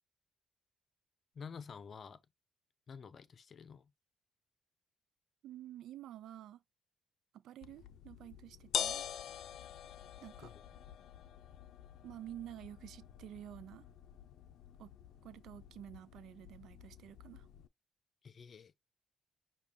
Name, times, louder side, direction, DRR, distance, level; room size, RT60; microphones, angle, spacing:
voice 1, 1.3-2.2 2.9-3.9 10.4-10.6 18.2-18.7, left 6 dB, 50° left, 0.7 m, -50 dB
voice 2, 5.4-6.6 7.3-9.1 10.2-10.5 12.0-13.9 14.8-14.9 15.2-17.5, right 12 dB, 80° right, 0.4 m, -50 dB
sound 1, 7.6-17.7, left 9 dB, 80° left, 0.5 m, -45 dB
5.9 x 2.4 x 3.6 m
cardioid pair, 90°, 0 cm